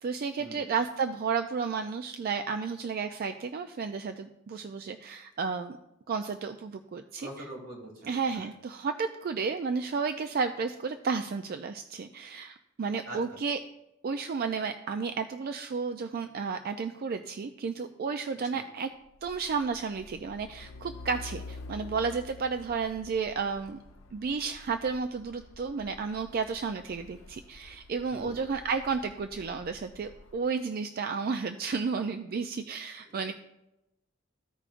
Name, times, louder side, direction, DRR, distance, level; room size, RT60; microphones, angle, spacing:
voice 1, 0.0-5.8 6.1-7.3 8.0-13.6 14.0-18.9 19.2-23.8 24.1-33.3, right 5 dB, 50° right, 8 dB, 0.4 m, -32 dB
voice 2, 7.2-8.5 13.1-13.4 18.5-18.6 28.1-28.3 33.1-33.2, right 1 dB, 80° right, -4 dB, 3.0 m, -43 dB
Truck, 19.1-30.5, left 2 dB, 75° left, 0.7 m, -48 dB
14.5 x 4.9 x 2.5 m, 0.92 s
head